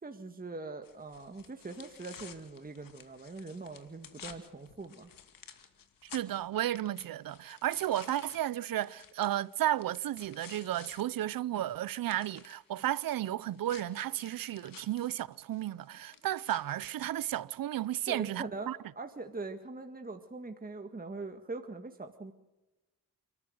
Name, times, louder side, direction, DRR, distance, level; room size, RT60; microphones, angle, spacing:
voice 1, 0.0-5.1 18.1-22.3, right 3 dB, 25° right, 1.8 m, -42 dB
sound 1, 0.8-11.0 11.4-17.4, left 7 dB, 75° left, 2.4 m, -54 dB
voice 2, 6.0-18.8, right 13 dB, 85° right, 0.7 m, -33 dB
29.5 x 13.5 x 7.9 m
cardioid pair, 70°, 33 cm